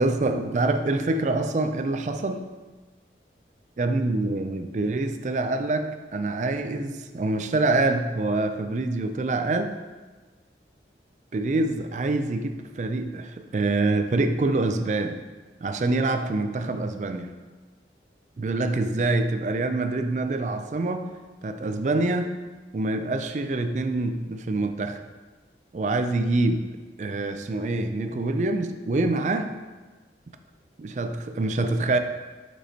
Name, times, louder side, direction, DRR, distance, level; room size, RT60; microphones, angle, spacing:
voice 1, 0.0-2.5 3.8-9.8 11.3-15.2 15.6-17.3 18.4-21.1 21.4-22.3 22.7-25.0 25.7-26.6 27.0-29.5 30.8-32.0, right 2 dB, 40° right, 8 dB, 0.3 m, -25 dB
6.1 x 5.5 x 2.9 m, 1.3 s
head